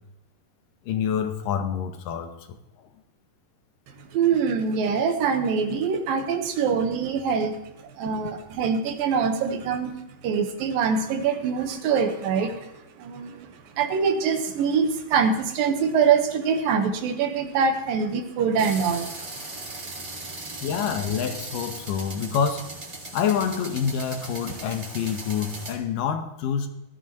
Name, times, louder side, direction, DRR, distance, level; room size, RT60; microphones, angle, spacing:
voice 1, 0.9-2.6 13.3-13.4 20.6-22.7 23.1-26.7, left 7 dB, 75° left, 2.6 m, -27 dB
voice 2, 4.0-10.0 10.2-12.7 13.0-19.8 20.1-20.3, right 6 dB, 80° right, 2.9 m, -24 dB
sound 1, 18.6-25.7, right 2 dB, 30° right, 1.4 m, -38 dB
18.5 x 13.5 x 3.0 m
omnidirectional pair, 4.0 m